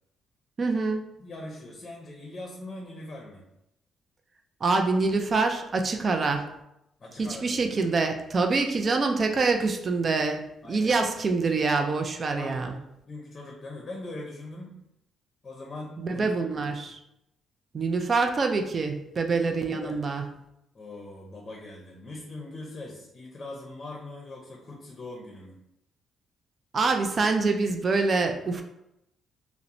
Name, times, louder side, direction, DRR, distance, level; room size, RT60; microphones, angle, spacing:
voice 1, 0.6-1.1 4.6-6.5 7.2-12.8 16.0-16.9 17.7-20.3 26.7-28.6, right 3 dB, 40° right, 5 dB, 0.3 m, -25 dB
voice 2, 1.2-3.4 7.0-7.9 10.6-11.4 12.3-14.8 15.4-16.8 19.7-20.0 20.7-25.6, left 2 dB, 40° left, -1 dB, 0.6 m, -41 dB
2.9 x 2.0 x 2.5 m, 0.83 s
cardioid pair, 90°, 0 cm